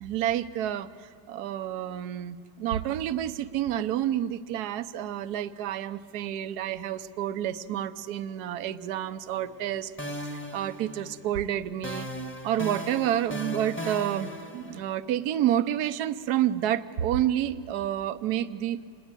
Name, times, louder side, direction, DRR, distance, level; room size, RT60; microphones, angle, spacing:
voice 1, 0.0-0.9 1.3-9.9 10.5-12.1 12.4-18.9, right 11 dB, 65° right, 13 dB, 1.2 m, -29 dB
sound 1, 9.3-9.7 10.0-11.4 11.8-15.0, equal, 5° left, 1.2 m, -37 dB
27.0 x 21.0 x 9.0 m, 2.2 s
omnidirectional pair, 2.1 m